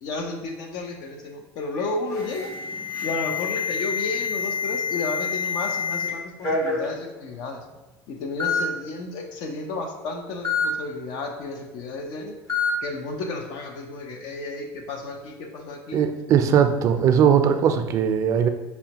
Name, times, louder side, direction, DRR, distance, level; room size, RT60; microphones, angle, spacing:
voice 1, 0.0-2.5 3.0-7.7 8.1-12.3 12.8-16.0, left 3 dB, 65° left, 3 dB, 0.7 m, -32 dB
Alarm, 2.1-6.1 6.4-6.8 7.7-7.8 8.4-8.6 10.4-10.7 12.5-12.7, left 6 dB, 50° left, 1.3 m, -27 dB
voice 2, 15.9-18.5, right 8 dB, 50° right, 8 dB, 0.3 m, -19 dB
5.5 x 2.1 x 2.9 m, 1.1 s
supercardioid pair, 110°, 7 cm